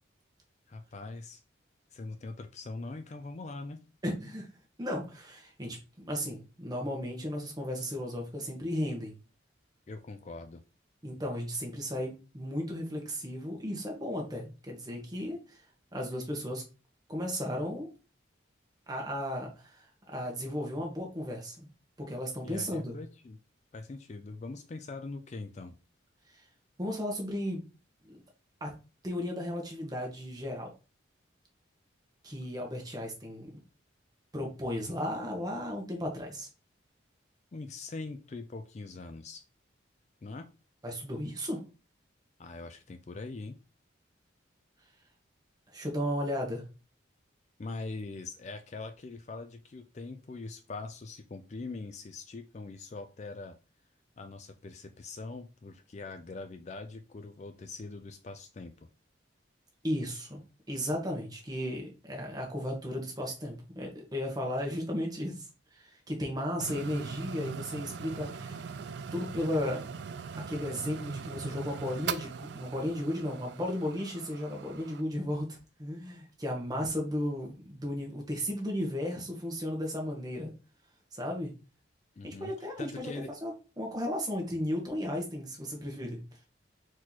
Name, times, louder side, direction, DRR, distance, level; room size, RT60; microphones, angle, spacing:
voice 1, 0.7-1.4 1.9-3.8 9.9-10.6 22.4-23.4 23.7-25.8 37.5-39.4 40.2-40.5 42.4-43.6 47.6-53.5 54.2-58.9 82.2-83.3, left 3 dB, 35° left, 7 dB, 0.4 m, -42 dB
voice 2, 4.0-4.5 4.8-5.8 6.0-9.1 11.0-15.6 15.9-16.6 17.1-17.9 18.9-21.7 22.0-22.9 26.8-27.6 28.0-28.2 28.6-28.7 29.0-30.7 32.2-33.5 34.3-36.5 40.8-41.6 45.7-46.6 59.8-60.4 60.7-65.4 65.7-68.7 69.1-69.8 70.3-80.5 81.1-81.5 82.2-83.1 83.4-86.2, equal, 20° right, 0 dB, 1.2 m, -35 dB
sound 1, 66.6-75.0, right 6 dB, 60° right, 0.3 m, -41 dB
4.3 x 3.0 x 4.0 m, 0.32 s
head